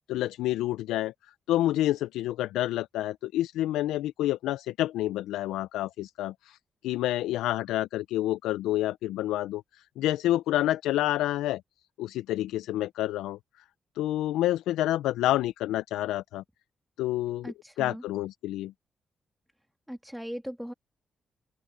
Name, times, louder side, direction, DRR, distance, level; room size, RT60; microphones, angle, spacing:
voice 1, 0.1-1.1 1.5-6.6 6.8-11.6 12.0-13.4 14.0-16.4 17.0-18.7, left 14 dB, 85° left, 0.4 m, -28 dB
voice 2, 17.4-18.0 19.9-20.7, equal, 5° right, 2.5 m, -38 dB
open air
supercardioid pair, 50°, 0 cm